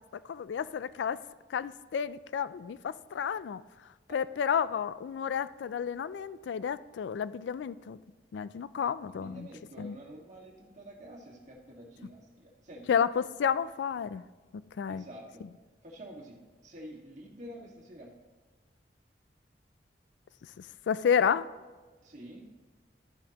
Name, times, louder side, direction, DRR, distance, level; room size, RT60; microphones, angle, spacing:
voice 1, 0.3-1.2 1.5-3.6 4.1-8.0 8.3-9.5 9.8-9.9 12.9-14.2 14.5-15.0 20.9-21.5, left 7 dB, 85° left, 16 dB, 0.3 m, -31 dB
voice 2, 9.0-13.0 14.9-15.4 15.8-18.1 22.0-22.5, right 1 dB, 45° right, -2 dB, 1.8 m, -48 dB
11.5 x 10.5 x 2.9 m, 1.3 s
head